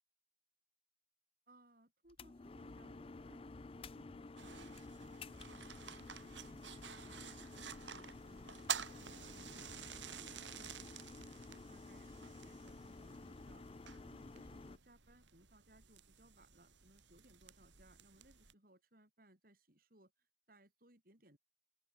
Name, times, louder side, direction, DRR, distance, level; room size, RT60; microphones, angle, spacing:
voice 1, 1.5-4.7 5.0-6.6 6.9-10.8 11.0-21.4, right 1 dB, 50° right, 6.7 m, -67 dB
sound 1, 2.1-14.8, left 3 dB, 30° left, 0.5 m, -52 dB
sound 2, 4.4-18.5, right 8 dB, 75° right, 3.4 m, -50 dB
open air
head